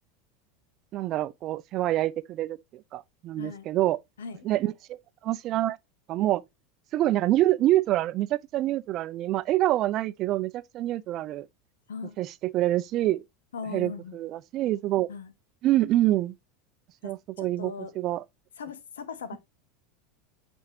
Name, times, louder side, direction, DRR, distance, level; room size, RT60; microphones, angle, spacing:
voice 1, 0.9-4.0 4.4-5.0 5.2-5.8 6.1-6.4 6.9-11.5 12.2-13.2 13.7-15.1 15.6-16.3 17.0-18.2, right 15 dB, 45° right, 0.5 m, -26 dB
voice 2, 13.5-14.2 15.1-15.3 17.0-17.1 17.4-17.9 18.6-19.4, left 5 dB, 80° left, 1.2 m, -39 dB
8.7 x 4.4 x 2.8 m
hypercardioid pair, 90°, 0 cm